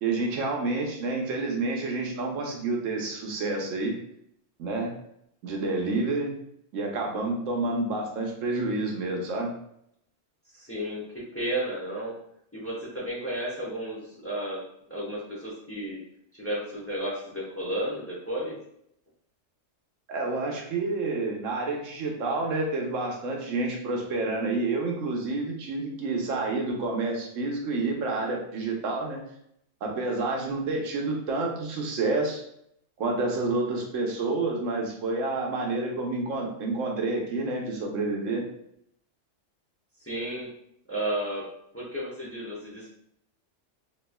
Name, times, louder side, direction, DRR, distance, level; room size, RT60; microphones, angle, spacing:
voice 1, 0.0-4.0 4.6-4.9 5.4-6.3 6.7-9.5 20.1-29.2 29.8-32.4 33.0-38.5, right 3 dB, 85° right, 0 dB, 1.1 m, -29 dB
voice 2, 10.5-12.1 12.5-14.6 14.9-16.0 16.3-18.6 40.0-40.5 40.9-41.5 41.7-42.9, right 1 dB, 15° left, -6 dB, 0.7 m, -33 dB
3.3 x 3.1 x 2.2 m, 0.73 s
omnidirectional pair, 1.3 m